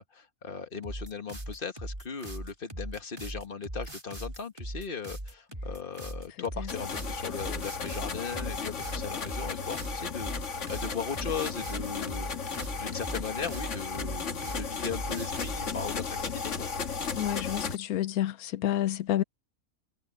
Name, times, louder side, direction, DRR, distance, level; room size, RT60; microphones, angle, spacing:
voice 1, 0.0-12.5 12.8-16.7, left 5 dB, 40° left, 1.7 m, -38 dB
sound 1, 0.8-15.7, right 1 dB, 20° right, 3.7 m, -39 dB
sound 2, 6.7-17.8, left 5 dB, 55° left, 1.8 m, -35 dB
voice 2, 17.2-19.2, left 12 dB, 90° left, 1.2 m, -29 dB
omnidirectional pair, 1.5 m